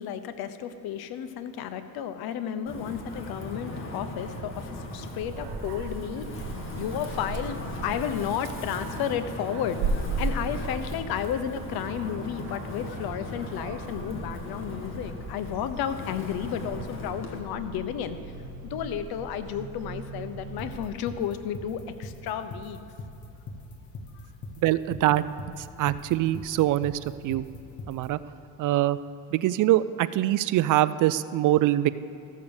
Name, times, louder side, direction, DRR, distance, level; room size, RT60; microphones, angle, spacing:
voice 1, 0.0-6.4 6.8-18.2 18.6-22.8, left 9 dB, 70° left, 10 dB, 0.9 m, -32 dB
Wind, 2.7-17.4, left 1 dB, 30° left, 1.9 m, -38 dB
Dog, 5.1-20.9, right 4 dB, 85° right, 1.2 m, -38 dB
sound 1, 20.6-28.1, left 3 dB, 50° left, 1.2 m, -40 dB
voice 2, 24.6-25.2 25.6-27.5 27.9-28.2 28.6-29.0 29.3-31.9, right 14 dB, 55° right, 16 dB, 0.4 m, -24 dB
14.0 x 6.6 x 7.1 m, 2.9 s
cardioid pair, 110°, 39 cm